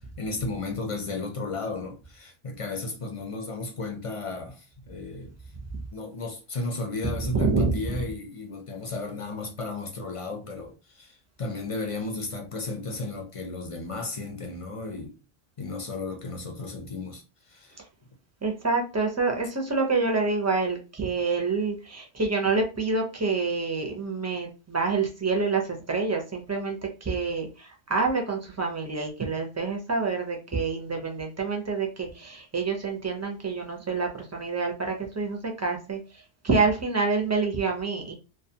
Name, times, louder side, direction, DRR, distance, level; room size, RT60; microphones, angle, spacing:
voice 1, 0.2-5.3 5.9-15.2 15.6-17.8, left 3 dB, 45° left, 0.5 m, -34 dB
voice 2, 7.2-8.0 18.4-38.1, right 4 dB, 25° right, 0.3 m, -27 dB
2.4 x 2.2 x 2.7 m
omnidirectional pair, 1.1 m